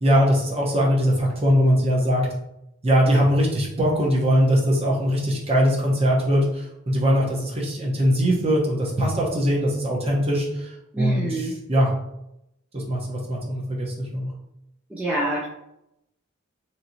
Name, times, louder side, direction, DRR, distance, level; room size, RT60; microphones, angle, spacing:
voice 1, 0.0-2.2 2.8-11.9 12.7-14.3, equal, 30° right, -3 dB, 0.8 m, -21 dB
voice 2, 10.9-11.6 14.9-15.5, right 2 dB, 5° right, -6 dB, 0.3 m, -26 dB
3.0 x 2.8 x 2.6 m, 0.83 s
head